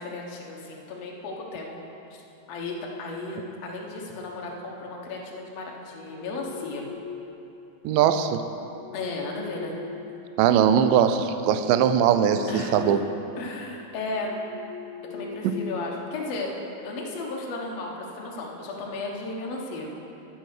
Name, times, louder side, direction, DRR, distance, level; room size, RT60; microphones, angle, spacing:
voice 1, 0.0-1.8 2.1-2.2 2.5-6.9 8.9-9.8 12.5-13.0 13.4-14.3 15.1-16.5 16.8-19.9, left 3 dB, 60° left, -1 dB, 1.8 m, -34 dB
sound 1, 6.1-7.6 8.6-10.7 11.2-13.1 13.4-13.6 14.1-16.4, left 6 dB, 85° left, 2.6 m, -40 dB
voice 2, 7.8-8.4 10.4-13.0 15.4-15.5, right 9 dB, 85° right, 9 dB, 1.9 m, -20 dB
10.5 x 8.3 x 6.5 m, 2.8 s
omnidirectional pair, 4.5 m